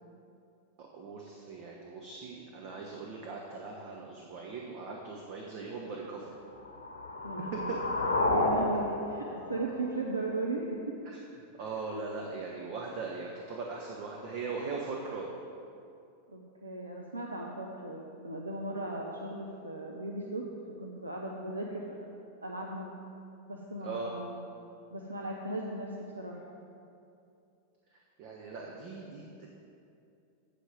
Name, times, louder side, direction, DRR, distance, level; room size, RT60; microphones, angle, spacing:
voice 1, 0.8-6.3 7.7-7.8 11.1-11.2 11.6-15.3 23.8-24.1 27.9-29.5, right 4 dB, 45° right, -1 dB, 1.0 m, -40 dB
sound 1, 6.6-10.6, left 2 dB, 70° left, 1.0 m, -31 dB
voice 2, 7.2-7.7 8.3-10.8 11.9-12.0 16.3-20.4 20.8-22.0 22.4-22.9 23.5-24.4 24.9-26.4, right 2 dB, 80° right, -1 dB, 0.7 m, -37 dB
8.3 x 5.1 x 7.7 m, 2.6 s
figure-of-eight pair, 90°, 0 cm